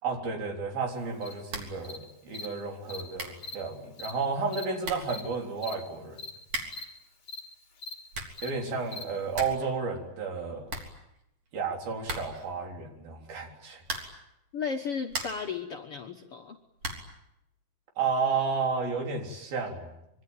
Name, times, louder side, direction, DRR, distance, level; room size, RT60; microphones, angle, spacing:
voice 1, 0.0-6.2 8.4-10.6 11.5-13.8 18.0-19.9, right 4 dB, 75° right, 2 dB, 5.5 m, -32 dB
Cricket, 1.2-1.3 1.8-2.0 2.3-2.5 2.9-3.0 3.4-3.6 4.0-4.1 4.5-4.7 5.1-5.2 5.6-5.7 6.2-6.3 6.7-6.8 7.3-7.4 7.8-7.9 8.4-8.5 8.9-9.0, left 3 dB, 35° left, 3.7 m, -40 dB
sound 1, 1.5-1.9 2.1-2.2 2.8-2.9 3.1-3.5 4.4-4.5 4.8-5.2 6.4-6.9 7.9-8.5 8.8-8.9 9.1-9.7 10.0-10.1 10.3-10.4 10.7-11.5 12.0-12.5 13.8-14.3 14.8-15.5 16.8-17.2, right 2 dB, 45° right, 4.3 m, -38 dB
voice 2, 14.5-16.6, left 6 dB, 60° left, 3 dB, 1.5 m, -34 dB
25.5 x 24.0 x 9.1 m, 0.83 s
omnidirectional pair, 4.3 m